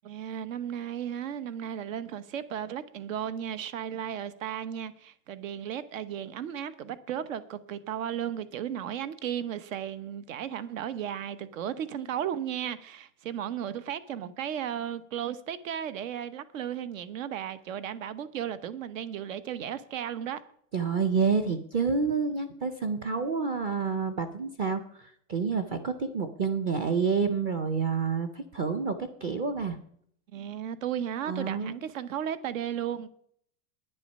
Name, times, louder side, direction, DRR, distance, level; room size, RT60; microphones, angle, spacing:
voice 1, 0.0-20.4 30.3-33.1, right 9 dB, 75° right, 1.1 m, -35 dB
voice 2, 20.7-29.8 31.3-31.8, right 5 dB, 25° right, 0.5 m, -28 dB
10.5 x 9.9 x 5.3 m
supercardioid pair, 170°, 39 cm